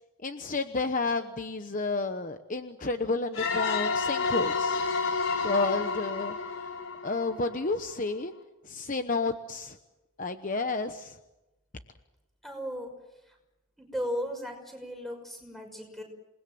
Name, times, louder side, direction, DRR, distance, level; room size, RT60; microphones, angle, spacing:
voice 1, 0.2-4.8 5.4-6.7 7.0-8.3 8.6-9.8 10.2-11.2, left 3 dB, 40° left, 8 dB, 1.0 m, -31 dB
sound 1, 3.3-7.9, left 4 dB, 75° left, 3.7 m, -30 dB
voice 2, 12.4-12.9 13.3-13.4 13.8-16.0, equal, ahead, 3 dB, 5.8 m, -36 dB
28.5 x 20.0 x 7.7 m, 0.99 s
head